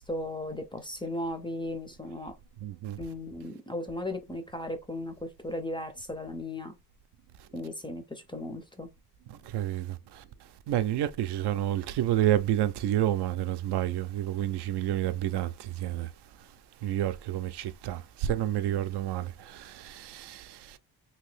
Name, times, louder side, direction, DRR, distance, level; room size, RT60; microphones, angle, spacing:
voice 1, 0.0-2.4 3.0-6.8 7.5-8.9, left 1 dB, 15° left, 0.4 m, -36 dB
voice 2, 2.6-3.0 9.3-10.2 10.7-16.1 16.8-20.8, right 12 dB, 75° right, 0.5 m, -29 dB
2.9 x 2.7 x 3.2 m
cardioid pair, 155°, 40 cm